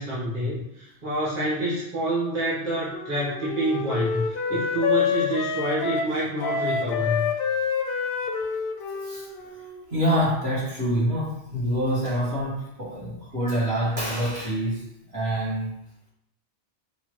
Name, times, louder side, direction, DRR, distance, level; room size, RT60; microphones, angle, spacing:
voice 1, 0.0-7.3, right 1 dB, 40° right, -8 dB, 1.1 m, -27 dB
Wind instrument woodwind instrument, 2.4-10.4, left 6 dB, 60° left, 0.7 m, -28 dB
voice 2, 9.9-15.8, equal, 60° right, -8 dB, 1.7 m, -26 dB
5.4 x 2.3 x 3.0 m, 0.80 s
omnidirectional pair, 1.2 m